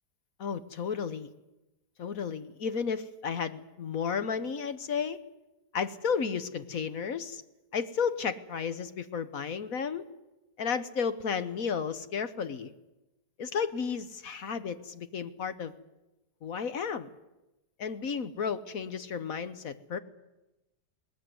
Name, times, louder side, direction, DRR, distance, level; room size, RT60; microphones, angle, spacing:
voice 1, 0.4-1.3 2.0-5.2 5.7-7.4 7.7-10.0 10.6-12.7 13.4-15.7 16.4-17.1 17.8-20.0, left 6 dB, 60° left, 12 dB, 1.3 m, -33 dB
20.5 x 19.0 x 9.4 m, 1.0 s
omnidirectional pair, 1.7 m